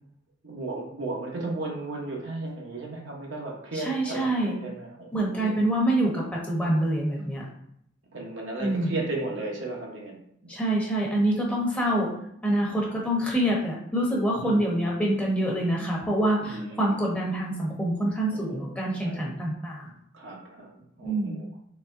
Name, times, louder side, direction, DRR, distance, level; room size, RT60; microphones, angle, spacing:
voice 1, 0.4-5.6 8.1-10.5 14.4-14.9 16.4-17.0 18.3-19.3 20.1-21.5, right 2 dB, 75° right, -1 dB, 0.9 m, -35 dB
voice 2, 3.7-4.6 5.1-7.4 8.6-8.9 10.5-12.1 12.4-19.9 21.0-21.4, right 1 dB, 5° left, -4 dB, 0.9 m, -26 dB
4.0 x 3.2 x 2.5 m, 0.71 s
head